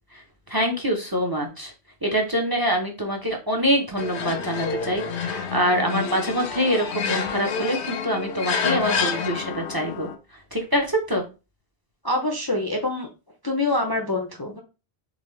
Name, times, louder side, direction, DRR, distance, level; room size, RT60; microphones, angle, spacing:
voice 1, 0.5-1.7 2.0-10.1 10.5-11.3, equal, 25° right, 2 dB, 0.7 m, -25 dB
sound 1, 4.0-10.2, left 5 dB, 85° left, 0.9 m, -28 dB
voice 2, 12.0-13.1 13.4-14.6, left 2 dB, 30° left, 2 dB, 0.5 m, -25 dB
3.8 x 3.2 x 3.2 m, 0.30 s
omnidirectional pair, 1.1 m